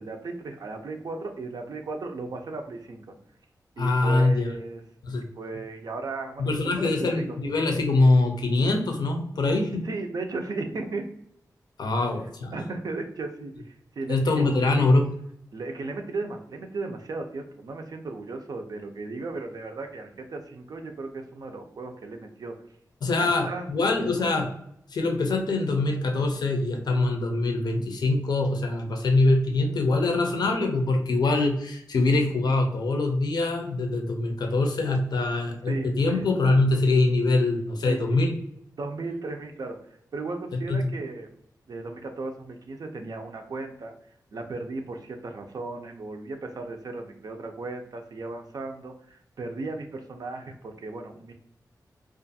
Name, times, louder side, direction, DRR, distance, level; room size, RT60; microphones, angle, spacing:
voice 1, 0.0-3.0 3.8-4.8 5.1-7.4 9.8-11.0 12.5-14.9 15.5-22.5 23.1-23.7 24.0-24.3 35.7-36.3 37.9-38.2 38.8-39.8 40.1-41.3 41.7-43.9 44.3-51.3, right 3 dB, 65° right, 4 dB, 0.4 m, -36 dB
voice 2, 3.8-4.5 5.0-5.2 6.4-9.8 11.8-12.5 14.1-15.1 23.0-24.5 24.9-38.3 40.7-40.8, left 2 dB, 75° left, 3 dB, 0.5 m, -23 dB
2.5 x 2.3 x 2.6 m, 0.73 s
wide cardioid pair, 85°, 7 cm